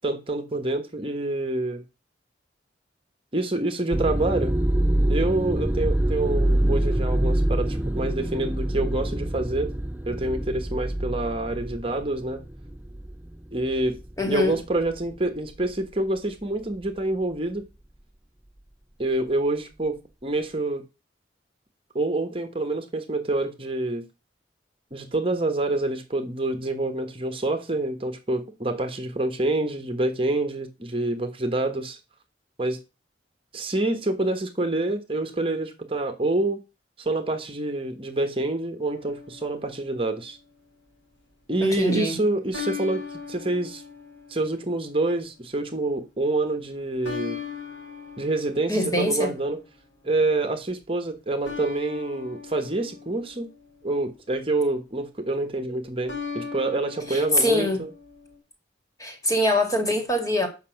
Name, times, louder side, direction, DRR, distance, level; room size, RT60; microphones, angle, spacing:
voice 1, 0.0-1.8 3.3-4.6 5.1-9.7 10.1-12.4 13.5-14.0 14.3-17.6 19.0-20.8 21.9-24.0 24.9-32.0 32.6-32.8 33.5-36.6 37.0-40.4 41.5-43.8 44.3-47.4 48.2-49.6 50.0-53.5 53.8-57.9, right 2 dB, 30° right, 1.3 m, -27 dB
sound 1, 3.9-13.3 13.7-14.1 14.9-15.1, right 1 dB, 10° right, 0.5 m, -25 dB
voice 2, 14.2-14.6 41.6-42.2 48.7-49.3 57.1-57.8 59.0-60.5, left 1 dB, 20° left, 2.3 m, -23 dB
sound 2, 38.9-40.2 42.5-45.0 47.0-49.6 51.4-54.0 56.1-58.4, left 6 dB, 85° left, 4.4 m, -39 dB
8.4 x 6.0 x 5.9 m
head